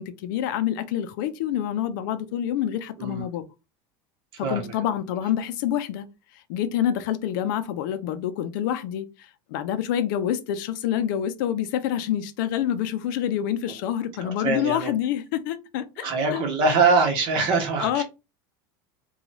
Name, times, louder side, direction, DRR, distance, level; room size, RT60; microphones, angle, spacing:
voice 1, 0.0-3.4 4.4-6.1 6.5-16.0 16.3-16.5 17.8-18.0, left 10 dB, 65° left, 0.5 m, -27 dB
voice 2, 4.4-4.7 14.2-14.9 16.0-18.0, right 4 dB, 45° right, 1.2 m, -23 dB
2.9 x 2.3 x 3.9 m
supercardioid pair, 160°, 11 cm